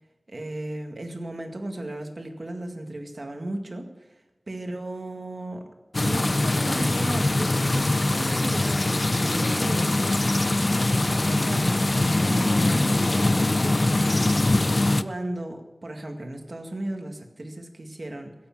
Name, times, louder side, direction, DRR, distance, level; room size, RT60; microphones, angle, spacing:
voice 1, 0.3-4.2 4.5-5.6 6.0-10.6 10.9-13.9 15.0-18.3, right 1 dB, 55° right, 4 dB, 2.0 m, -35 dB
sound 1, 5.9-15.0, left 2 dB, 45° left, 0.5 m, -22 dB
16.5 x 8.6 x 7.4 m, 1.1 s
wide cardioid pair, 70°, 0 cm